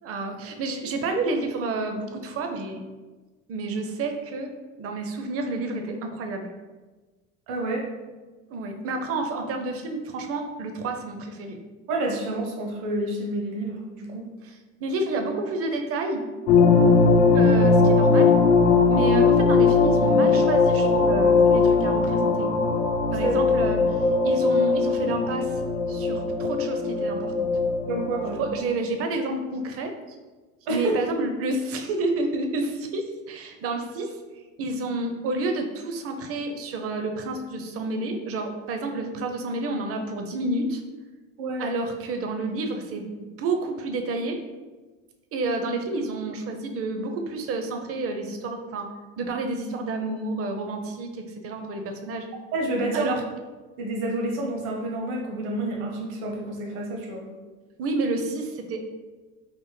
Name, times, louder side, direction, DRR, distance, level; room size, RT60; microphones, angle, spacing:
voice 1, 0.0-2.8 3.5-6.5 8.5-11.6 14.4-14.5 14.8-16.2 17.3-18.4 18.9-22.5 23.1-25.5 25.9-27.5 28.4-29.9 30.7-34.2 34.6-40.8 41.6-44.4 45.3-48.9 49.2-52.3 52.9-53.2 57.8-58.9, right 3 dB, 35° right, 5 dB, 0.5 m, -30 dB
voice 2, 7.5-7.9 11.9-14.3 23.2-23.3 27.8-28.5 30.7-31.0 41.4-41.7 52.5-53.1 53.8-57.2, right 2 dB, 65° right, 1 dB, 0.8 m, -29 dB
sound 1, 16.5-28.6, left 4 dB, 70° left, 0.7 m, -20 dB
3.5 x 2.0 x 3.1 m, 1.3 s
hypercardioid pair, 80°, 40 cm